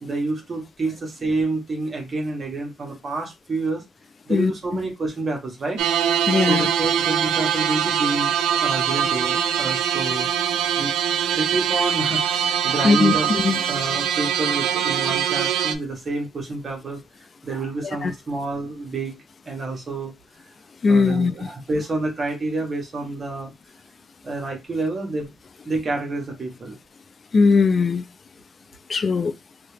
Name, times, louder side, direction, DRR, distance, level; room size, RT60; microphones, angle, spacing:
voice 1, 0.0-3.8 4.2-5.8 6.5-10.3 10.8-10.9 11.3-13.3 13.7-17.0 17.4-19.2 19.4-20.1 20.9-23.5 24.2-25.3 25.6-26.8, right 2 dB, 40° right, 1.3 m, -28 dB
voice 2, 4.3-4.8 6.3-6.7 12.8-13.6 18.0-18.1 20.8-21.3 27.3-28.0 28.9-29.3, left 4 dB, 40° left, 0.4 m, -19 dB
sound 1, 5.8-15.7, right 9 dB, 90° right, 0.4 m, -23 dB
2.8 x 2.8 x 3.3 m
cardioid pair, 90°, 0 cm